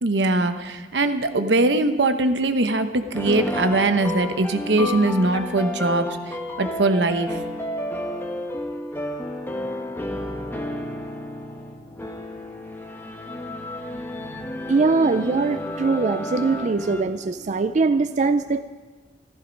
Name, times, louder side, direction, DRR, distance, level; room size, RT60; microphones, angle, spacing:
voice 1, 0.0-6.1 6.6-7.4, right 2 dB, 85° right, 9 dB, 1.0 m, -21 dB
sound 1, 3.1-17.0, left 1 dB, 15° left, 1.1 m, -31 dB
voice 2, 14.7-18.6, right 4 dB, 45° right, 11 dB, 0.4 m, -22 dB
14.5 x 14.0 x 5.2 m, 1.4 s
head